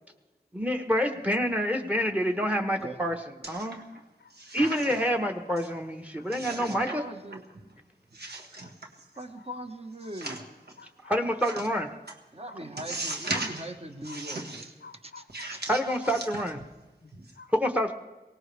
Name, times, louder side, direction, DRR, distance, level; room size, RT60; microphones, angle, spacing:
voice 1, 0.5-3.2 3.5-3.8 4.5-7.0 11.1-11.9 15.7-16.6 17.5-17.9, equal, 10° right, 7 dB, 1.0 m, -27 dB
voice 2, 2.8-3.2 6.3-7.5 9.2-10.6 12.3-15.2 15.5-15.8, right 1 dB, 35° right, 5 dB, 1.4 m, -41 dB
sound 1, 3.4-4.0 4.3-5.2 5.6-5.7 6.3-7.0 7.3-7.7 8.1-9.2 10.0-10.7 11.4-11.7 12.1-12.2 12.8-13.7 14.0-14.7 15.3-16.8 17.1-17.3, right 2 dB, 70° right, 1.5 m, -37 dB
voice 3, 3.9-4.3 6.2-6.3 8.6-8.7 9.1-9.3 10.8-11.1 12.5-12.6 13.1-13.4 14.1-14.2 14.8-15.5 16.0-16.1 17.0-17.5, left 5 dB, 75° left, 10 dB, 0.6 m, -51 dB
23.0 x 18.5 x 3.4 m, 1.1 s
wide cardioid pair, 55°, 17 cm